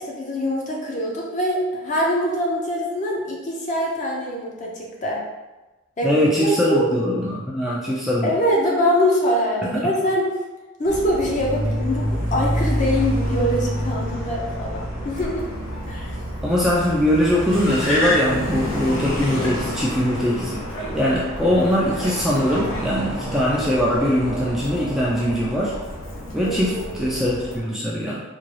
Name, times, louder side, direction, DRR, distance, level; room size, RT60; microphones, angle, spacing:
voice 1, 0.0-5.2 6.0-6.1 6.4-6.9 8.2-10.3 10.8-15.5 15.9-16.2 26.4-27.2, equal, 35° left, -2 dB, 0.6 m, -23 dB
voice 2, 6.0-8.3 9.7-9.8 16.4-20.6 20.9-25.7 26.3-28.2, left 1 dB, ahead, -6 dB, 0.4 m, -21 dB
Car, 10.9-27.6, equal, 75° left, 1.0 m, -28 dB
3.7 x 2.3 x 3.2 m, 1.1 s
head